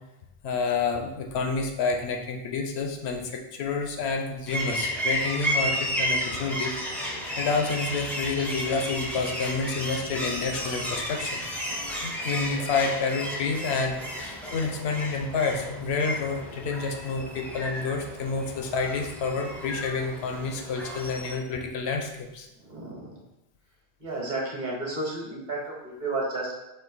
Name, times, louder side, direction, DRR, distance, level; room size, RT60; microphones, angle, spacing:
voice 1, 0.4-6.8 7.4-11.4 11.7-22.5, left 4 dB, 80° left, 3 dB, 0.9 m, -29 dB
sound 1, 4.5-21.3, equal, ahead, 0.5 m, -33 dB
voice 2, 22.6-23.2 24.0-26.5, right 2 dB, 45° right, -3 dB, 1.2 m, -32 dB
4.3 x 2.6 x 3.9 m, 0.91 s
omnidirectional pair, 1.1 m